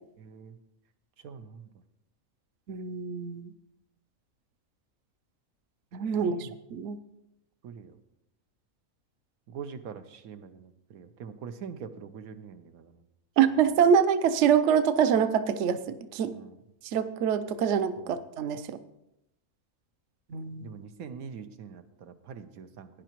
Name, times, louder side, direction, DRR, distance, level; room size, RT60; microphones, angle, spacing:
voice 1, 0.2-0.6 1.2-1.7 6.1-6.5 7.6-8.0 9.5-12.9 16.3-16.6 18.0-18.2 20.6-22.9, right 6 dB, 90° right, 8 dB, 1.2 m, -43 dB
voice 2, 2.7-3.5 5.9-7.0 13.4-16.4 16.9-18.8 20.3-20.6, right 7 dB, 65° right, 11 dB, 0.9 m, -25 dB
17.0 x 10.0 x 3.0 m, 0.86 s
omnidirectional pair, 1.5 m